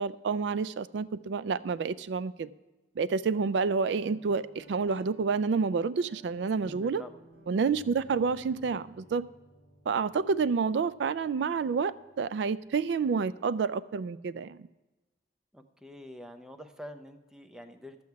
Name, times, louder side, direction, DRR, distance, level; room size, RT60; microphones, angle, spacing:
voice 1, 0.0-2.5 3.0-7.0 7.5-9.3 9.9-14.7, right 5 dB, 80° right, 0.3 m, -29 dB
Guitar, 3.9-13.4, right 1 dB, 60° right, 2.0 m, -58 dB
voice 2, 6.6-7.1 15.5-18.0, equal, 5° right, 0.7 m, -46 dB
12.0 x 8.4 x 4.7 m
head